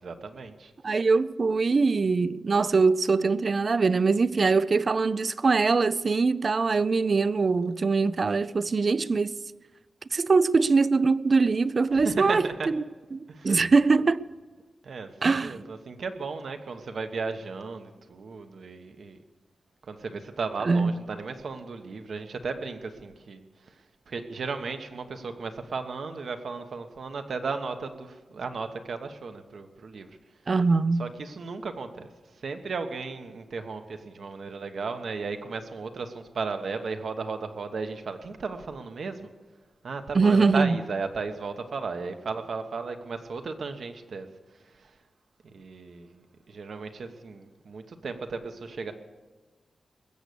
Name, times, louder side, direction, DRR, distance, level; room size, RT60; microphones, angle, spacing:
voice 1, 0.0-0.7 11.9-12.7 13.3-13.6 14.8-19.2 19.8-30.2 31.0-39.3 39.8-45.0 45.4-48.9, right 4 dB, 65° right, 1.1 m, -35 dB
voice 2, 0.8-9.3 10.1-12.8 13.1-14.2 15.2-15.6 20.7-20.9 30.5-31.1 40.1-40.8, right 4 dB, 40° right, 0.4 m, -23 dB
20.5 x 8.1 x 6.8 m
wide cardioid pair, 125°, 0 cm